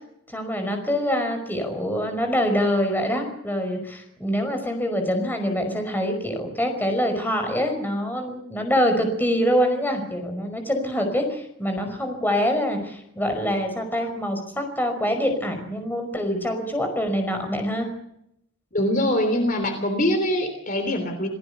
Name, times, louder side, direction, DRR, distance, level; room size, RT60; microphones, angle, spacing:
voice 1, 0.3-17.9, equal, 10° left, 5 dB, 5.2 m, -25 dB
voice 2, 18.7-21.3, left 1 dB, 40° left, 7 dB, 3.4 m, -23 dB
28.0 x 18.5 x 6.8 m, 0.79 s
head